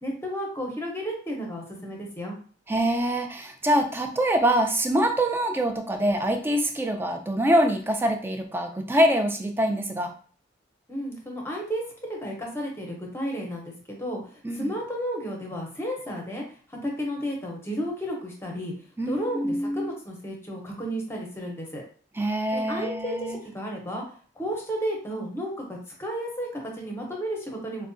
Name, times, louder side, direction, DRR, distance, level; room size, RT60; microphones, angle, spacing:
voice 1, 0.0-2.4 10.9-14.2 14.5-16.4 16.8-18.7 19.1-21.8 22.5-24.0 24.4-27.9, equal, 15° left, 0 dB, 0.7 m, -32 dB
voice 2, 2.7-10.1 14.4-14.7 19.0-19.9 22.2-23.4, right 1 dB, 10° right, 5 dB, 0.3 m, -24 dB
4.6 x 2.1 x 2.6 m, 0.43 s
head